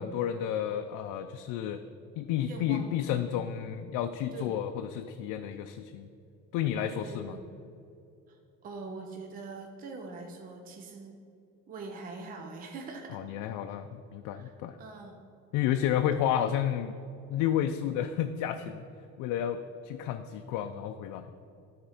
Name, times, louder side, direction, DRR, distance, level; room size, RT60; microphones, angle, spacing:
voice 1, 0.0-1.8 2.2-6.1 6.5-7.4 13.1-14.8 15.5-17.0 17.3-18.8 19.2-21.3, left 10 dB, 85° left, 7 dB, 0.5 m, -31 dB
voice 2, 2.5-3.0 4.3-4.6 6.9-7.5 8.3-11.2 11.7-13.2 14.3-15.2, right 3 dB, 30° right, 3 dB, 0.6 m, -43 dB
13.0 x 4.3 x 4.9 m, 2.7 s
cardioid pair, 170°, 30 cm